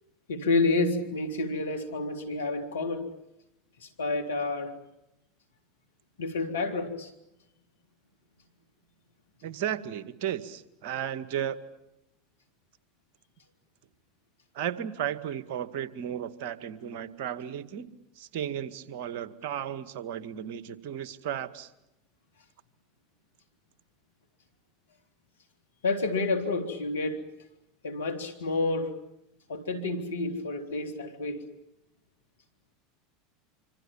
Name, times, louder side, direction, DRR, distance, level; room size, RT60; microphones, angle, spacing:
voice 1, 0.3-3.1 3.8-4.7 6.2-7.1 25.8-27.2 27.8-28.9 29.5-31.4, left 3 dB, 80° left, 6 dB, 3.6 m, -29 dB
voice 2, 9.4-11.6 14.5-21.7, right 9 dB, 65° right, 13 dB, 1.9 m, -34 dB
26.5 x 26.0 x 7.3 m, 0.87 s
hypercardioid pair, 85°, 0 cm